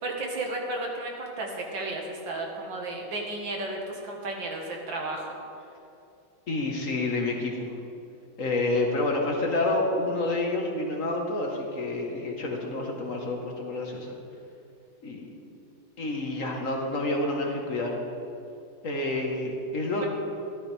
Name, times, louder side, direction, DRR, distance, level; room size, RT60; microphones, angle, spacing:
voice 1, 0.0-5.3 20.0-20.1, right 2 dB, 90° right, 0 dB, 2.3 m, -33 dB
voice 2, 6.5-7.6 8.4-14.2 15.0-15.3 16.0-18.0 18.8-20.1, left 2 dB, 50° left, 0 dB, 1.5 m, -28 dB
14.0 x 12.0 x 3.4 m, 2.7 s
omnidirectional pair, 2.0 m